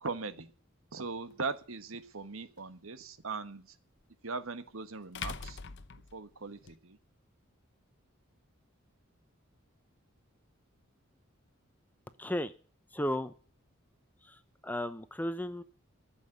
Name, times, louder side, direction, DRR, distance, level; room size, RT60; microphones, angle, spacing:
voice 1, 0.0-0.5 0.9-3.7 4.2-5.6 6.1-7.0, right 4 dB, 80° right, 12 dB, 1.3 m, -39 dB
sound 1, 1.3-1.4 4.0-4.1 5.1-6.7, left 5 dB, 55° left, 0.8 m, -42 dB
voice 2, 12.2-12.5 12.9-13.3 14.2-15.6, left 1 dB, 10° left, 12 dB, 0.8 m, -34 dB
13.5 x 7.5 x 9.9 m, 0.41 s
head